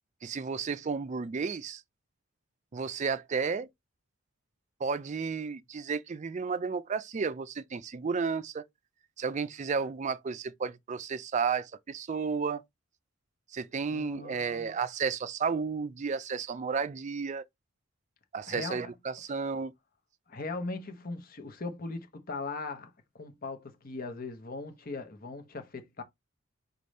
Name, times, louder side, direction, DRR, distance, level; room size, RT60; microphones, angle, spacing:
voice 1, 0.2-1.8 2.7-3.7 4.8-8.6 9.2-12.6 13.5-17.4 18.3-19.7, right 5 dB, 35° right, 0.3 m, -32 dB
voice 2, 13.9-14.8 18.5-18.9 20.3-26.0, left 3 dB, 45° left, 0.9 m, -39 dB
4.9 x 2.5 x 4.1 m
head